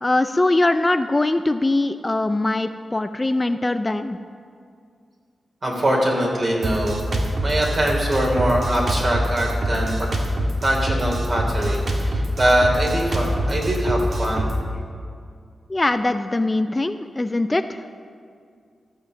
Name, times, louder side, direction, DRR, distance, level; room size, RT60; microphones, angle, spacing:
voice 1, 0.0-4.2 15.7-17.8, left 2 dB, 25° left, 9 dB, 0.4 m, -22 dB
voice 2, 5.6-7.0 7.4-10.1 10.6-14.5, right 1 dB, 45° right, -1 dB, 3.3 m, -22 dB
Drum kit, 6.6-14.6, right 1 dB, 60° right, 1.7 m, -25 dB
14.5 x 7.0 x 6.7 m, 2.2 s
cardioid pair, 70°, 0 cm